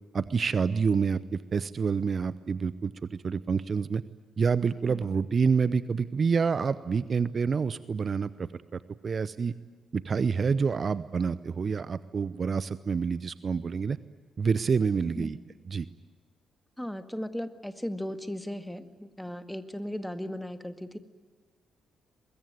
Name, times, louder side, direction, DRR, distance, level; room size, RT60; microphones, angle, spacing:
voice 1, 0.1-4.0 4.4-9.5 9.9-14.0 14.4-15.4 15.7-15.9, right 5 dB, 45° right, 16 dB, 0.7 m, -28 dB
voice 2, 15.2-15.5 16.8-21.0, equal, 5° left, 8 dB, 1.9 m, -37 dB
23.5 x 21.5 x 9.4 m, 1.4 s
hypercardioid pair, 40°, 0 cm